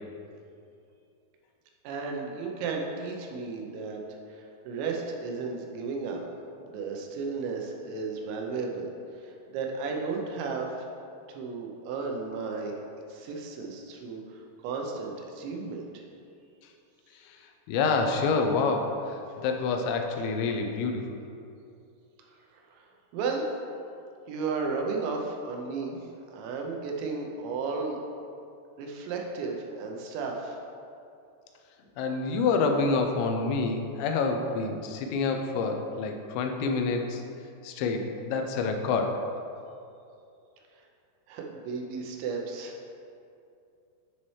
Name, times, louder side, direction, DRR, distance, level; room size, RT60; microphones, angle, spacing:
voice 1, 1.8-4.0 4.3-6.2 6.6-8.9 9.2-10.7 11.3-12.8 13.1-16.1 22.3-22.9 23.1-23.5 24.3-26.0 26.3-28.0 28.8-30.6 41.3-42.9, right 4 dB, 90° right, 1 dB, 3.1 m, -34 dB
voice 2, 17.7-21.2 32.0-37.2 37.6-39.1, left 4 dB, 90° left, 4 dB, 2.9 m, -27 dB
10.5 x 4.2 x 3.1 m, 2.5 s
omnidirectional pair, 5.0 m